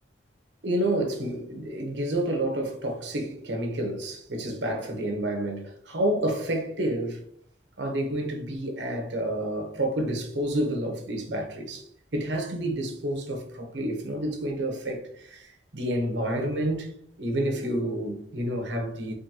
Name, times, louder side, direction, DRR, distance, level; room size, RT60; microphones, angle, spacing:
voice 1, 0.6-7.2 7.8-11.9 12.1-16.9 17.2-19.1, right 1 dB, 90° right, 1.0 m, -29 dB
3.7 x 3.4 x 2.9 m
head